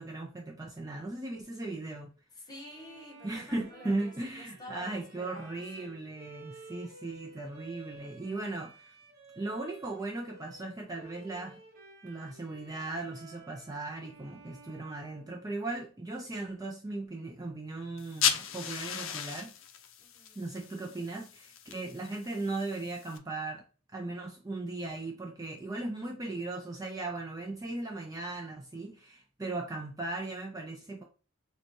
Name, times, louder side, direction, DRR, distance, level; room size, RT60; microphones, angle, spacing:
voice 1, 0.0-2.1 3.2-8.9 9.4-11.6 12.0-19.5 20.4-23.6 23.9-31.0, right 2 dB, 15° right, 0.4 m, -37 dB
voice 2, 2.4-5.5 5.8-6.0 20.0-20.4, left 1 dB, 20° left, 1.2 m, -49 dB
Bowed string instrument, 2.5-15.9, right 3 dB, 45° right, 1.0 m, -54 dB
sound 1, 18.0-23.2, left 9 dB, 65° left, 0.5 m, -36 dB
6.3 x 2.3 x 3.1 m
head